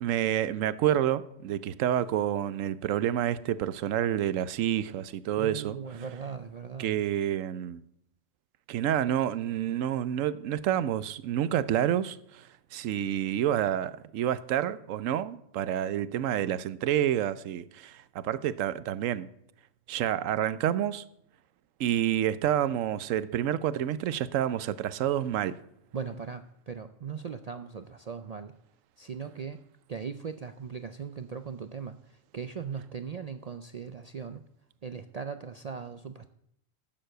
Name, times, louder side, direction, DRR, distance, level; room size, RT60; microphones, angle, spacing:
voice 1, 0.0-5.8 6.8-7.8 8.7-12.4 12.7-19.3 19.9-21.0 21.8-25.6, right 11 dB, 85° right, 1.0 m, -28 dB
voice 2, 5.4-7.0 25.9-28.5 29.0-29.6 29.9-34.4 34.8-36.3, right 6 dB, 60° right, 0.4 m, -39 dB
11.5 x 7.5 x 7.7 m
omnidirectional pair, 1.3 m